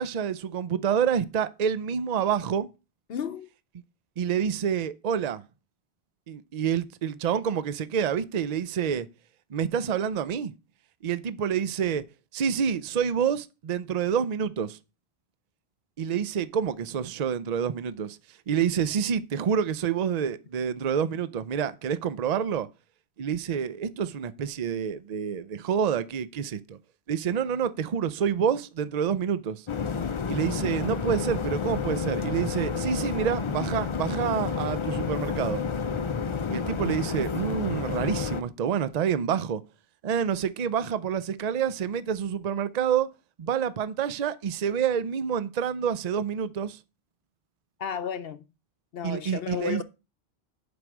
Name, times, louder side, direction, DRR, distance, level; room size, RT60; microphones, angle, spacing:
voice 1, 0.0-2.7 4.2-5.4 6.3-9.1 9.5-10.5 11.0-12.0 12.3-14.8 16.0-18.2 18.5-22.7 23.2-26.8 27.1-29.7 30.3-35.6 36.5-39.6 40.0-43.1 43.4-46.8 49.0-49.8, right 8 dB, 50° right, 0.6 m, -28 dB
voice 2, 3.1-3.5 47.8-48.5 48.9-49.8, left 7 dB, 65° left, 0.8 m, -32 dB
sound 1, 29.7-38.4, left 6 dB, 40° left, 0.5 m, -30 dB
7.8 x 5.2 x 6.1 m
omnidirectional pair, 1.1 m